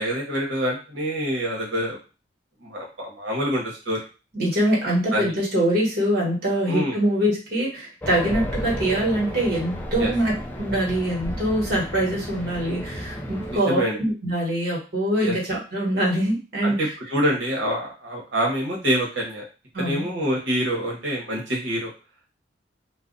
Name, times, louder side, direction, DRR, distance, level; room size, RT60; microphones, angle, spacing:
voice 1, 0.0-2.0 2.6-4.0 5.1-5.3 6.7-6.9 10.0-10.1 13.5-14.0 15.2-15.3 16.6-19.4 19.8-21.9, equal, 80° right, -2 dB, 1.0 m, -26 dB
voice 2, 4.3-16.9 19.7-20.1, right 1 dB, 55° right, -3 dB, 1.2 m, -24 dB
Race car auto racing, 8.0-13.6, equal, 10° left, 0.4 m, -32 dB
2.4 x 2.0 x 3.8 m, 0.33 s
head